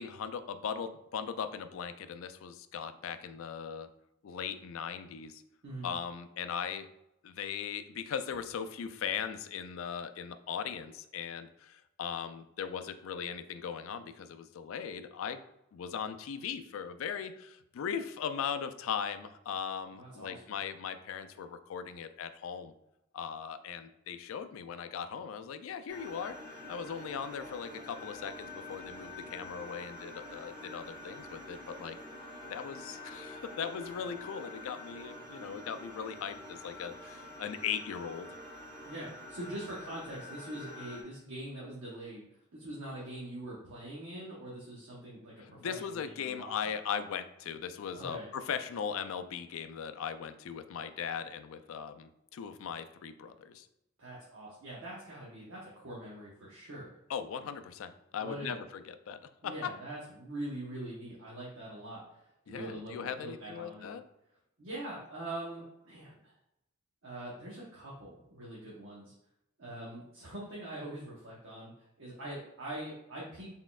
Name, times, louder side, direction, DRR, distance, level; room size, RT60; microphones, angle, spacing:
voice 1, 0.0-3.9 4.2-5.4 5.8-6.9 7.2-15.4 15.7-22.7 23.1-32.0 32.5-38.3 45.4-53.7 57.1-59.7 62.5-64.0, left 7 dB, 70° left, 10 dB, 0.3 m, -39 dB
voice 2, 5.6-5.9 19.9-20.4 38.8-42.2 42.5-46.7 47.9-48.3 54.0-57.0 58.2-58.6 59.4-64.0 64.6-66.3 67.0-69.1 69.6-73.6, right 1 dB, 70° right, -5 dB, 0.9 m, -43 dB
sound 1, 25.9-41.0, left 2 dB, 40° right, 0.9 m, -47 dB
4.1 x 3.6 x 2.3 m, 0.83 s
head